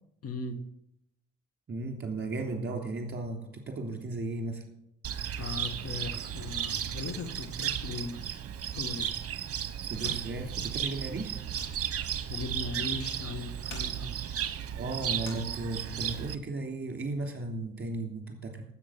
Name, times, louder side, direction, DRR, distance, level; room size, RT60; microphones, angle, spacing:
voice 1, 0.2-0.6 5.4-8.4 8.7-9.1 12.3-14.2 15.6-15.8, left 3 dB, 50° left, 9 dB, 1.6 m, -38 dB
voice 2, 1.7-4.6 9.8-11.4 14.8-18.6, right 2 dB, 35° right, 3 dB, 3.2 m, -35 dB
Cricket, 5.0-16.3, right 9 dB, 50° right, 1.0 m, -34 dB
sound 1, 9.8-16.1, left 2 dB, 85° left, 3.8 m, -49 dB
9.9 x 8.1 x 7.3 m, 0.78 s
cardioid pair, 90°, 30 cm